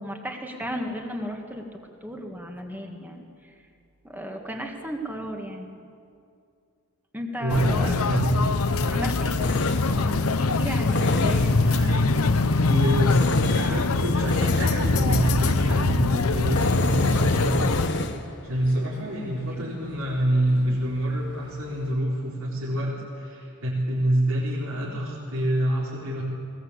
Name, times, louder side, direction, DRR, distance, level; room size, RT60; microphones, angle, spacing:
voice 1, 0.0-3.5 4.0-5.8 7.1-8.0 8.9-12.1 13.5-13.9 19.6-19.7, equal, 10° right, 2 dB, 2.0 m, -35 dB
voice 2, 7.4-8.4 11.4-17.7 18.4-26.2, right 1 dB, 70° right, -6 dB, 4.4 m, -27 dB
sound 1, 7.5-17.9, left 3 dB, 75° left, 0.9 m, -23 dB
Tools, 7.8-21.9, left 2 dB, 55° left, 1.5 m, -33 dB
20.5 x 20.0 x 8.2 m, 2.4 s
head